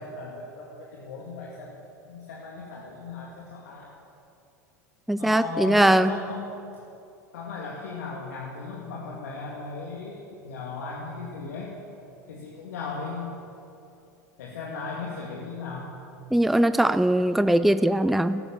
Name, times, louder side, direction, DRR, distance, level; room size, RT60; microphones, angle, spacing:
voice 1, 0.0-1.8 2.1-3.9 5.1-6.6 7.3-11.8 12.3-13.4 14.4-16.0, left 4 dB, 70° left, -3 dB, 2.2 m, -36 dB
voice 2, 5.1-6.1 16.3-18.4, right 1 dB, ahead, 12 dB, 0.4 m, -21 dB
15.0 x 13.0 x 7.1 m, 2.8 s
hypercardioid pair, 85°, 9 cm